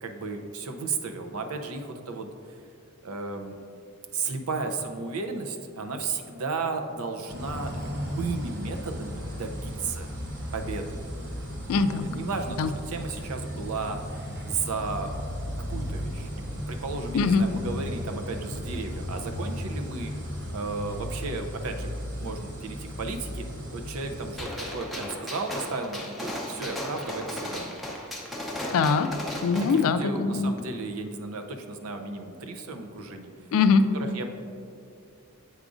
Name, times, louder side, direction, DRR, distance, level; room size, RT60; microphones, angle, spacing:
voice 1, 0.0-2.3 3.0-3.6 4.1-10.1 10.5-11.0 12.0-14.0 14.5-15.1 15.7-20.1 20.5-21.9 22.2-23.4 23.7-27.7 29.5-33.3 33.9-34.3, right 3 dB, 75° right, 5 dB, 0.5 m, -34 dB
sound 1, 7.3-24.5, equal, 60° right, 0.9 m, -35 dB
voice 2, 11.7-12.1 12.6-12.7 17.1-17.4 28.7-29.1 29.4-30.5 33.5-33.8, left 5 dB, 70° left, 10 dB, 0.3 m, -22 dB
Gunshot gunfire, 24.4-29.8, left 1 dB, ahead, 0.6 m, -35 dB
7.9 x 4.8 x 2.5 m, 2.4 s
head